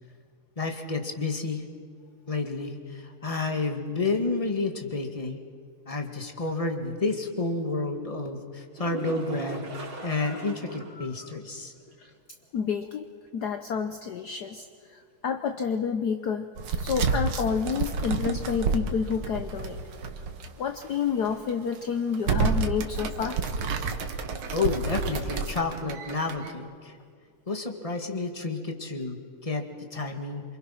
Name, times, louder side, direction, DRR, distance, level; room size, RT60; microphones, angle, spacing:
voice 1, 0.6-1.6 2.3-5.4 5.9-11.7 24.5-27.0 27.5-30.4, left 3 dB, 15° left, 5 dB, 2.1 m, -30 dB
sound 1, 8.7-11.0 11.3-11.4 11.9-12.0 15.7-15.8, right 4 dB, 60° right, 3.6 m, -38 dB
voice 2, 9.9-10.5 11.0-11.3 12.0-12.1 12.5-13.1 13.3-16.5 16.8-19.8 20.6-23.4, left 6 dB, 60° left, 7 dB, 1.4 m, -29 dB
sound 2, 16.6-20.5 20.8-20.9 21.5-21.7 22.1-26.5, right 4 dB, 85° right, 2.3 m, -29 dB
28.0 x 26.0 x 6.0 m, 2.2 s
omnidirectional pair, 2.3 m